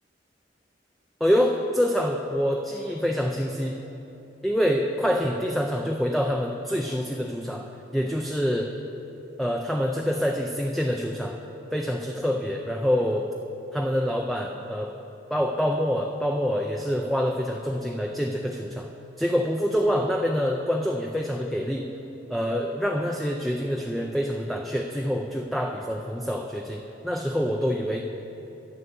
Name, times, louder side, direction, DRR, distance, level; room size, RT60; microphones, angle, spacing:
voice 1, 1.2-3.8 4.4-7.7 7.9-8.7 9.4-11.4 11.7-13.3 13.7-15.0 15.3-18.9 19.2-21.9 22.3-28.0, equal, ahead, 1 dB, 0.4 m, -26 dB
9.0 x 7.4 x 7.0 m, 3.0 s
head